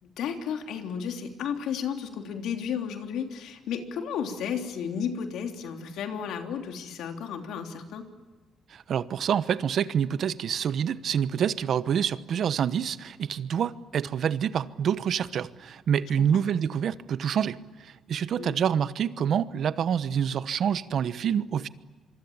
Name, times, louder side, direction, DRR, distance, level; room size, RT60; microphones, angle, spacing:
voice 1, 0.0-8.0 16.2-16.3 18.4-18.6, left 7 dB, 80° left, 3.2 m, -33 dB
voice 2, 8.7-21.7, right 8 dB, 65° right, 1.1 m, -27 dB
26.0 x 24.0 x 8.7 m
cardioid pair, 90°, 0 cm